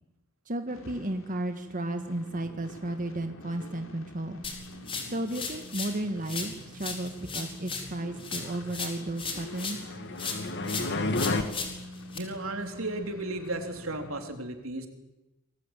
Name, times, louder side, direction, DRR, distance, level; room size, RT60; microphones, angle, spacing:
voice 1, 0.5-4.4 5.0-9.9, right 1 dB, 40° right, 6 dB, 1.7 m, -34 dB
sound 1, 0.7-14.2, left 1 dB, 70° left, 3.9 m, -46 dB
sound 2, 4.4-6.0 6.3-9.9 10.2-12.2, left 4 dB, 25° left, 4.7 m, -37 dB
sound 3, 9.5-11.4, left 2 dB, 55° left, 2.4 m, -30 dB
voice 2, 12.1-14.9, right 2 dB, 80° right, 5 dB, 3.6 m, -35 dB
28.0 x 21.5 x 9.1 m, 0.99 s
head